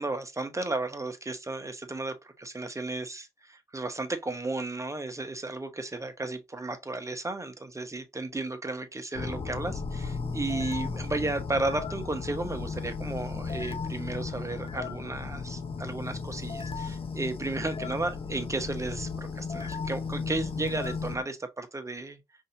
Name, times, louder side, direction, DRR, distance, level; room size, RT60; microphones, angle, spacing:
voice 1, 0.0-22.2, right 2 dB, 20° right, 1.0 m, -34 dB
sound 1, 9.1-21.2, left 4 dB, 35° left, 0.8 m, -35 dB
5.3 x 2.7 x 2.7 m
hypercardioid pair, 40°, 15 cm